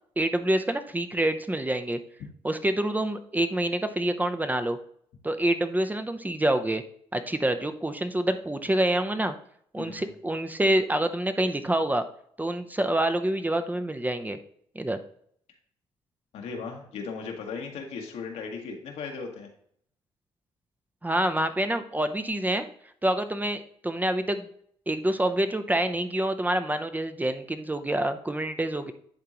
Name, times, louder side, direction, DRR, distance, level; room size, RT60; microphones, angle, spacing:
voice 1, 0.2-2.0 2.4-4.8 5.2-6.8 7.1-9.3 9.7-12.0 12.4-14.4 14.7-15.0 21.0-22.6 23.0-24.5 24.9-28.9, right 1 dB, 15° right, 9 dB, 0.6 m, -27 dB
voice 2, 9.8-10.1 16.3-19.5, left 5 dB, 80° left, 1 dB, 1.4 m, -37 dB
10.5 x 3.7 x 3.0 m, 0.64 s
supercardioid pair, 60°, 11 cm